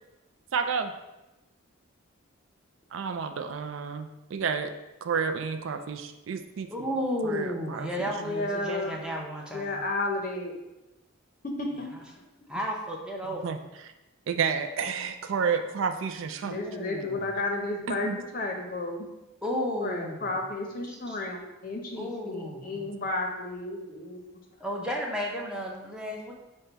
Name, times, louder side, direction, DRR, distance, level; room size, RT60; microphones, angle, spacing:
voice 1, 0.5-0.9 2.9-4.7 5.0-6.9 7.2-8.1 13.4-13.6 14.3-16.6 17.9-18.2, right 6 dB, 70° right, 7 dB, 0.3 m, -30 dB
voice 2, 6.7-9.8 12.5-13.5 16.5-17.3 19.4-20.3 21.1-21.2 22.0-23.0 24.6-26.3, equal, 5° right, -2 dB, 0.6 m, -33 dB
voice 3, 8.2-9.0 9.5-10.5 11.4-12.0 16.4-19.1 19.8-24.4, left 2 dB, 45° left, 2 dB, 0.6 m, -32 dB
5.3 x 2.2 x 4.5 m, 0.99 s
head